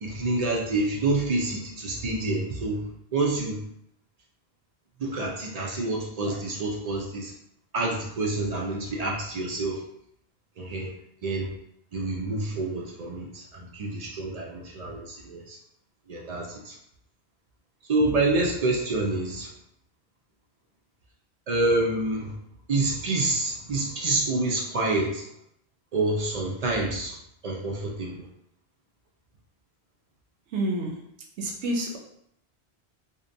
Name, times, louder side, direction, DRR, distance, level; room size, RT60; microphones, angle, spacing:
voice 1, 0.0-3.7 5.0-7.3 7.7-9.8 10.6-10.9 11.2-11.5 11.9-15.6 16.1-16.7 17.9-19.5 21.5-22.3 22.7-25.3 25.9-27.2 27.4-28.3, right 2 dB, 55° right, -2 dB, 0.4 m, -27 dB
voice 2, 30.5-31.0 31.4-32.0, right 1 dB, 90° right, 0 dB, 0.9 m, -28 dB
2.7 x 2.1 x 2.6 m, 0.71 s
omnidirectional pair, 1.1 m